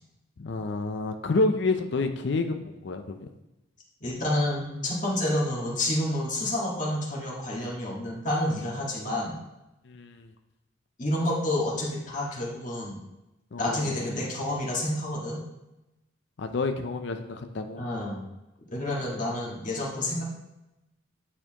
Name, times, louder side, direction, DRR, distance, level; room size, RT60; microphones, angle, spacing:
voice 1, 0.4-3.3 9.9-10.3 13.5-14.0 16.4-17.8, left 3 dB, 60° left, 7 dB, 0.5 m, -29 dB
voice 2, 4.0-9.3 11.0-12.9 13.6-15.4 17.8-18.2 18.7-20.2, left 1 dB, 40° left, -3 dB, 1.6 m, -29 dB
9.6 x 4.3 x 2.9 m, 0.95 s
head